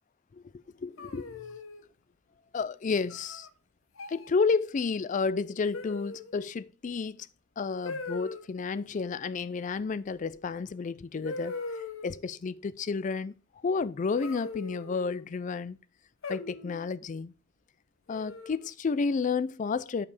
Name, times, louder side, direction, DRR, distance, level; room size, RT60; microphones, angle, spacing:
voice 1, 0.3-1.4 2.5-3.5 4.1-7.3 7.6-13.3 13.6-15.8 16.3-17.3 18.1-20.1, left 4 dB, 35° left, 0.3 m, -31 dB
sound 1, 1.0-1.8 3.1-3.5 4.0-4.3 5.7-6.4 7.8-8.4 10.4-10.5 11.2-12.2 14.2-15.3 16.2-16.9 18.1-18.7, left 3 dB, 75° left, 1.0 m, -40 dB
8.3 x 4.7 x 4.8 m
head